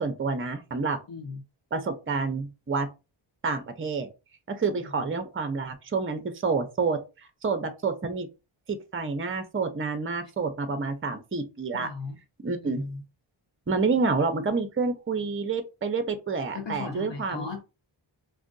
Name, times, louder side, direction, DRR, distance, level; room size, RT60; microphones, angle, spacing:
voice 1, 0.0-1.0 1.7-2.9 3.4-4.1 4.5-8.3 8.7-11.9 12.4-12.9 13.7-17.5, right 4 dB, 25° right, 0.6 m, -28 dB
voice 2, 1.1-1.4 4.8-5.2 11.7-12.2 12.6-13.0 16.5-17.6, left 4 dB, 60° left, 0.7 m, -37 dB
2.7 x 2.5 x 3.8 m
wide cardioid pair, 85°, 49 cm